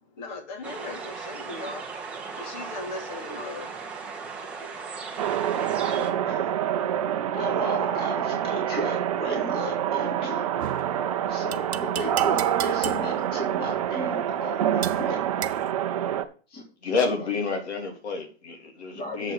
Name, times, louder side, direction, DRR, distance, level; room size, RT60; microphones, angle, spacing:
voice 1, 0.2-1.8 2.4-3.9 4.2-6.0, left 2 dB, 45° left, 2.7 m, -39 dB
sound 1, 0.6-6.1, right 5 dB, 5° right, 0.8 m, -37 dB
sound 2, 5.2-16.2, right 10 dB, 35° right, 0.6 m, -26 dB
voice 2, 5.8-6.5 7.3-10.5 11.3-15.2 16.5-16.6 18.9-19.3, equal, 15° left, 2.4 m, -34 dB
sound 3, 10.6-15.7, right 11 dB, 75° right, 0.7 m, -37 dB
voice 3, 16.8-19.3, left 4 dB, 85° left, 2.9 m, -29 dB
7.4 x 5.2 x 6.5 m
hypercardioid pair, 165°, 32 cm